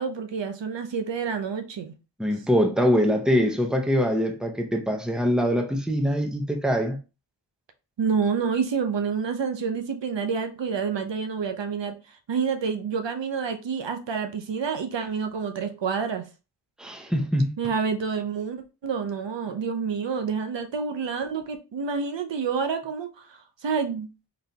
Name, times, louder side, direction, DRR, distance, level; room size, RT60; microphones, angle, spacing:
voice 1, 0.0-1.9 8.0-16.2 17.6-24.1, right 6 dB, 75° right, 0.7 m, -28 dB
voice 2, 2.2-7.0 16.8-17.5, equal, ahead, 0.8 m, -23 dB
4.1 x 3.2 x 2.8 m
wide cardioid pair, 55°, 44 cm